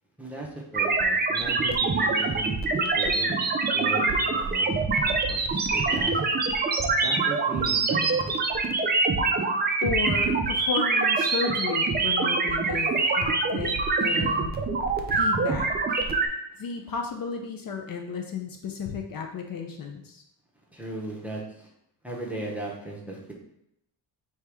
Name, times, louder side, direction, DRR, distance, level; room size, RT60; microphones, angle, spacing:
voice 1, 0.2-3.5 3.7-6.2 7.0-8.3 20.7-21.7 22.0-23.3, right 2 dB, 5° right, -3 dB, 0.8 m, -37 dB
sound 1, 0.7-16.3, right 3 dB, 25° right, 0.4 m, -25 dB
voice 2, 9.8-14.6 15.1-15.7 16.6-20.2, left 5 dB, 55° left, 3 dB, 0.6 m, -33 dB
4.6 x 2.9 x 3.5 m, 0.77 s
wide cardioid pair, 155°, 43 cm